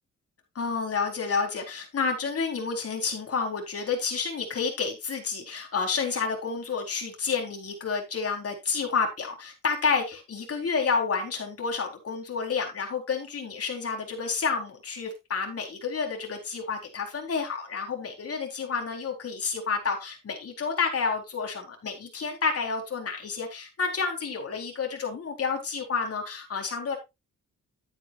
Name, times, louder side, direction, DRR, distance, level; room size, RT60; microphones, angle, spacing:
voice 1, 0.5-27.0, left 5 dB, 50° left, 2 dB, 4.1 m, -30 dB
12.0 x 9.2 x 2.5 m, 0.23 s
cardioid pair, 115°, 30 cm